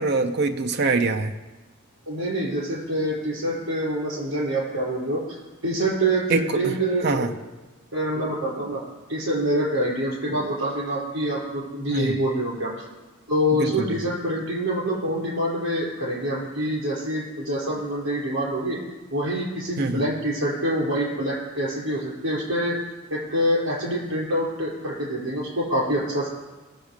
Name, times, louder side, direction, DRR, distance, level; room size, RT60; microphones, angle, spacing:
voice 1, 0.0-1.3 6.3-6.8 7.0-7.3 11.9-12.2 13.6-14.0 19.8-20.0, right 3 dB, 50° right, 5 dB, 0.7 m, -24 dB
voice 2, 2.1-5.4 5.6-7.3 7.9-8.8 9.1-12.7 13.3-18.8 19.1-22.8 23.1-26.3, right 1 dB, 75° right, -4 dB, 5.4 m, -26 dB
19.0 x 7.1 x 5.1 m, 1.2 s
head